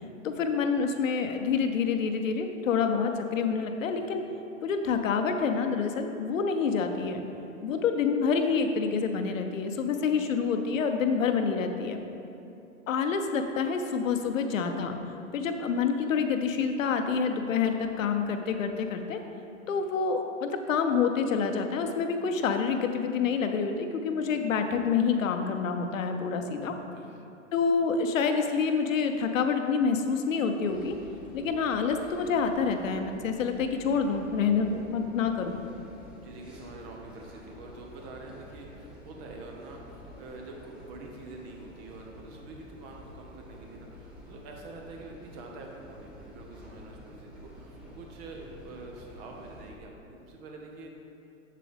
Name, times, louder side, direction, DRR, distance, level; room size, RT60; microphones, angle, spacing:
voice 1, 0.2-4.2 4.6-7.2 7.6-12.0 12.9-14.9 15.3-19.2 19.7-26.8 27.5-31.0 31.3-35.6, left 5 dB, 75° left, 6 dB, 0.8 m, -27 dB
voice 2, 26.8-27.2 36.2-51.0, right 2 dB, 50° right, 1 dB, 1.4 m, -46 dB
sound 1, 30.6-49.7, equal, ahead, 1.7 m, -49 dB
7.5 x 7.5 x 3.5 m, 2.8 s
hypercardioid pair, 105°, 39 cm